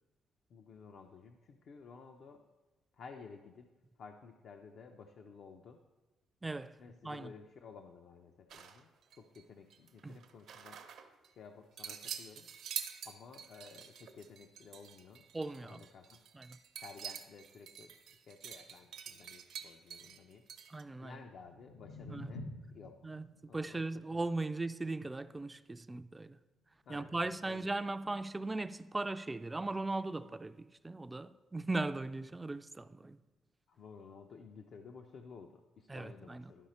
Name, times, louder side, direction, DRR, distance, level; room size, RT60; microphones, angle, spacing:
voice 1, 0.5-2.4 3.0-3.7 4.0-5.8 6.8-10.8 11.3-12.5 13.0-15.3 15.6-16.2 16.8-20.5 21.0-23.0 23.5-24.2 26.9-27.7 33.7-36.7, left 5 dB, 60° left, 0.5 m, -54 dB
voice 2, 6.4-6.8 7.0-7.3 10.0-10.2 15.3-15.8 16.3-16.6 20.7-21.2 22.1-22.3 23.0-23.3 23.5-26.4 26.9-33.2 35.9-36.5, right 2 dB, 15° right, 0.3 m, -38 dB
sound 1, 8.5-9.4 9.7-11.3 11.8-20.8, right 8 dB, 70° right, 0.7 m, -47 dB
sound 2, 21.2-27.3, left 1 dB, 90° left, 1.1 m, -51 dB
11.5 x 4.9 x 4.2 m
cardioid pair, 105°, 0 cm